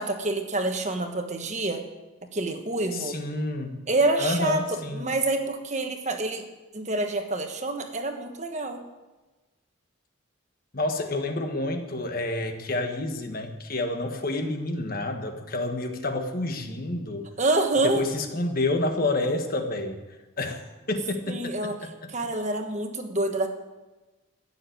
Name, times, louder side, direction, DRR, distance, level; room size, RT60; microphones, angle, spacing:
voice 1, 0.0-1.8 2.3-3.1 3.9-4.6 4.9-6.4 6.7-8.8 17.4-18.0 21.3-21.7 22.1-23.5, right 2 dB, 35° right, 5 dB, 1.4 m, -27 dB
voice 2, 2.9-3.8 4.2-5.1 10.7-17.3 17.8-20.6 20.9-21.9, left 2 dB, 45° left, 5 dB, 1.5 m, -29 dB
15.5 x 7.1 x 9.3 m, 1.2 s
head